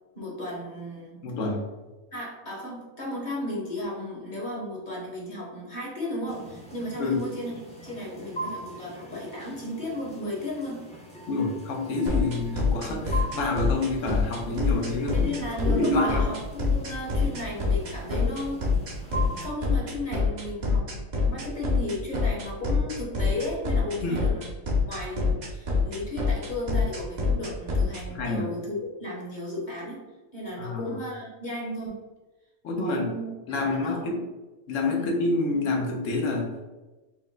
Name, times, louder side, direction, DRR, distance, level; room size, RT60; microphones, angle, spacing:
voice 1, 0.1-1.2 2.1-7.5 7.8-10.8 15.1-18.6 19.4-24.5 24.9-30.0 30.3-31.9 32.8-34.2 35.0-35.2, left 1 dB, 40° left, -4 dB, 1.0 m, -34 dB
voice 2, 1.2-1.6 7.0-7.2 11.3-15.3 15.6-16.3 24.0-24.2 28.1-28.5 30.6-31.0 32.6-33.1 33.5-34.2 34.7-36.5, left 2 dB, 75° left, 1 dB, 1.1 m, -27 dB
sound 1, 6.3-19.5, right 2 dB, 10° left, 0.5 m, -41 dB
sound 2, 12.1-28.0, left 4 dB, 45° right, 0.6 m, -25 dB
4.5 x 2.1 x 3.6 m, 1.1 s
omnidirectional pair, 1.3 m